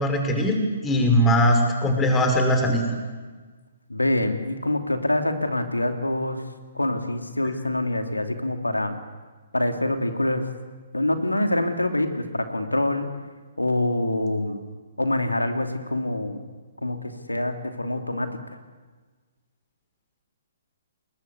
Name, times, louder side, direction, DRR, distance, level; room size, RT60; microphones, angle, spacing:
voice 1, 0.0-2.9, equal, 15° left, 4 dB, 5.5 m, -20 dB
voice 2, 3.9-6.5 6.7-8.9 9.5-10.5 10.9-13.1 13.6-14.6 15.0-16.4 16.8-18.4, left 1 dB, 85° left, 6 dB, 3.0 m, -25 dB
29.5 x 21.0 x 8.4 m, 1.4 s
figure-of-eight pair, 125°, 0 cm